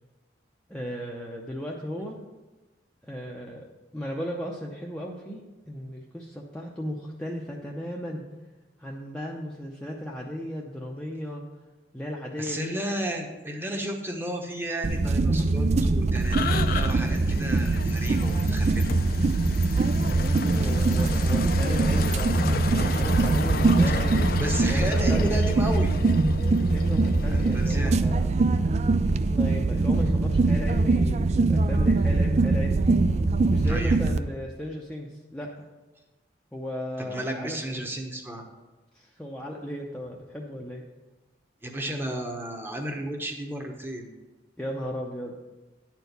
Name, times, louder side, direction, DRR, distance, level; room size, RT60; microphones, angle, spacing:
voice 1, 0.7-2.2 3.0-3.6 3.9-8.2 8.8-11.4 11.9-12.7 20.1-24.3 24.7-25.4 26.7-28.3 29.3-32.9 33.5-35.7 36.5-37.6 38.9-40.8 44.6-45.4, equal, 5° left, -3 dB, 0.6 m, -36 dB
voice 2, 12.4-18.9 24.4-25.9 27.3-28.0 29.8-30.1 33.6-34.0 37.0-38.4 41.6-44.1, right 1 dB, 10° right, 2 dB, 1.0 m, -33 dB
sound 1, 14.8-34.2, right 3 dB, 35° right, 0.3 m, -23 dB
sound 2, 16.2-27.8, left 4 dB, 50° left, 0.5 m, -34 dB
10.5 x 4.5 x 6.7 m, 1.1 s
head